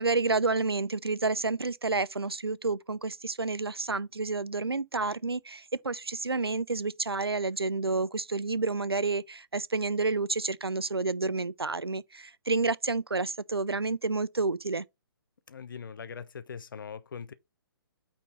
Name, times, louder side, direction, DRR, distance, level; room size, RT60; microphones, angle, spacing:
voice 1, 0.0-14.8, right 3 dB, 85° right, 0.7 m, -30 dB
voice 2, 15.5-17.3, left 6 dB, 60° left, 1.1 m, -41 dB
9.0 x 4.4 x 4.0 m
figure-of-eight pair, 130°, 13 cm